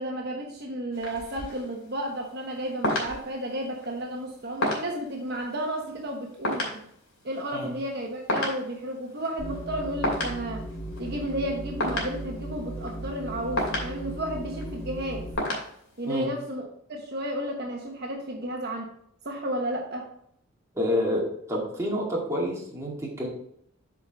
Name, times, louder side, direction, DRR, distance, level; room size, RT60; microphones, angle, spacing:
voice 1, 0.0-6.9 7.2-10.7 11.0-15.3 16.0-18.9 19.2-20.1, right 1 dB, 55° right, 0 dB, 1.2 m, -32 dB
sound 1, 0.9-16.2, left 1 dB, 75° left, 2.6 m, -34 dB
sound 2, 9.4-15.3, right 1 dB, 15° left, 1.9 m, -37 dB
voice 2, 20.7-23.3, equal, 15° right, -4 dB, 2.1 m, -28 dB
8.1 x 4.9 x 3.9 m, 0.70 s
head